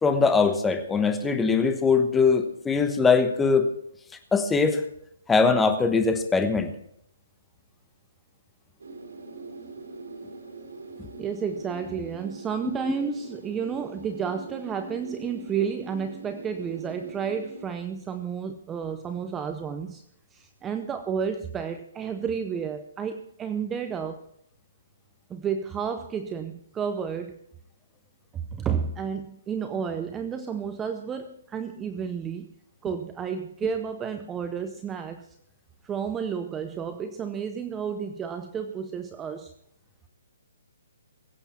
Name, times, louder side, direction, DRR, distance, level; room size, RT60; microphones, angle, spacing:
voice 1, 0.0-3.7 4.3-4.8 5.3-6.7 13.0-13.1, left 4 dB, 5° left, 7 dB, 1.0 m, -21 dB
sound 1, 8.8-17.6, right 3 dB, 80° right, 3.3 m, -42 dB
voice 2, 11.2-20.0 20.3-24.2 25.3-27.4 28.3-32.5 32.8-35.4 35.8-39.5, right 7 dB, 10° right, 8 dB, 0.6 m, -31 dB
22.0 x 8.3 x 4.3 m, 0.72 s
hypercardioid pair, 165°, 0 cm